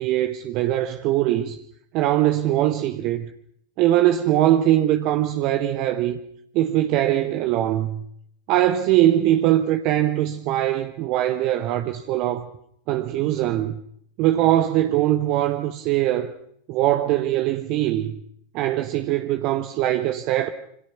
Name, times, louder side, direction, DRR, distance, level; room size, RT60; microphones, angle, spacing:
voice 1, 0.0-1.6 1.9-3.3 3.8-6.2 6.5-8.0 8.5-12.5 12.9-13.8 14.2-16.3 16.7-18.1 18.5-20.5, right 13 dB, 40° right, 1.5 m, -21 dB
27.5 x 26.5 x 6.0 m
figure-of-eight pair, 90°, 0 cm